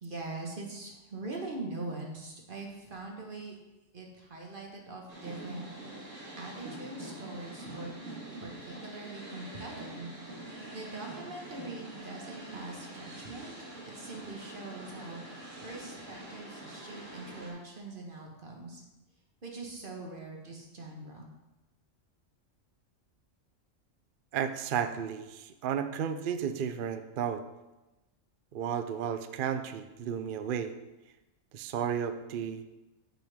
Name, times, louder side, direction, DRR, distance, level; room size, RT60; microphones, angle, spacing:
voice 1, 0.0-3.6 3.9-6.1 6.4-7.9 8.4-10.1 10.7-13.6 13.9-18.8 19.4-21.3, right 2 dB, 40° right, 0 dB, 1.6 m, -42 dB
sound 1, 5.1-17.5, right 1 dB, 75° right, 2.1 m, -45 dB
voice 2, 24.3-27.4 28.5-30.7 31.5-32.6, right 8 dB, 60° right, 9 dB, 0.6 m, -33 dB
7.7 x 7.6 x 3.6 m, 1.0 s
omnidirectional pair, 1.3 m